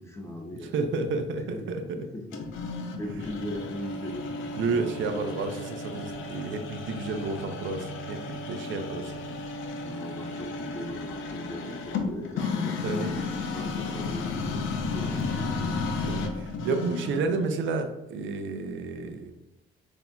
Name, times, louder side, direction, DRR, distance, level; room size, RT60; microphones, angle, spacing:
voice 1, 0.0-2.7 3.0-5.4 8.6-8.8 9.8-15.9, left 1 dB, 15° left, 0 dB, 0.6 m, -40 dB
voice 2, 0.6-2.0 4.6-9.1 12.8-13.2 16.0-19.3, right 4 dB, 75° right, 7 dB, 0.6 m, -31 dB
sound 1, 2.3-17.3, left 3 dB, 80° left, 0.6 m, -33 dB
6.0 x 2.7 x 2.3 m, 0.97 s
cardioid pair, 90°, 20 cm